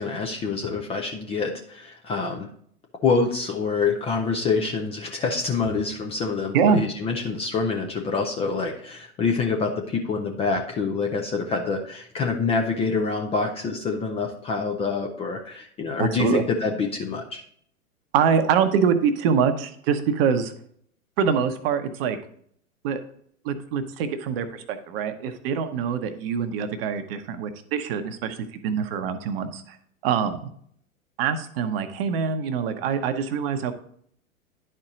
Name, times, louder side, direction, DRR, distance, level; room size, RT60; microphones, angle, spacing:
voice 1, 0.0-2.5 3.0-17.4, left 4 dB, 15° left, 2 dB, 0.5 m, -26 dB
voice 2, 16.0-16.4 18.1-20.5 21.2-22.2 22.8-23.0 23.4-29.8 30.0-30.5 31.2-33.7, right 7 dB, 40° right, 9 dB, 0.9 m, -24 dB
10.5 x 4.5 x 3.9 m, 0.63 s
figure-of-eight pair, 105°, 43 cm